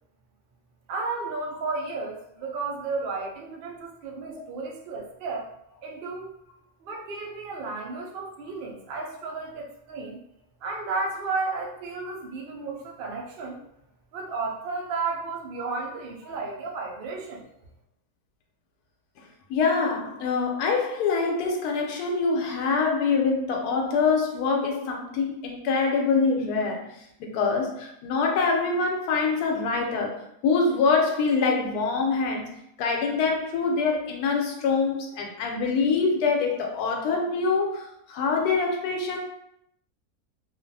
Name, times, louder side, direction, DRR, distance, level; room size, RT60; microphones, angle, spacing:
voice 1, 0.9-5.5 5.8-6.3 6.8-10.2 10.6-13.6 14.1-17.5, right 3 dB, 90° right, -1 dB, 0.5 m, -33 dB
voice 2, 19.5-26.9 27.2-32.5 32.8-39.2, left 4 dB, 90° left, 1 dB, 1.1 m, -25 dB
2.5 x 2.3 x 2.6 m, 0.75 s
omnidirectional pair, 1.6 m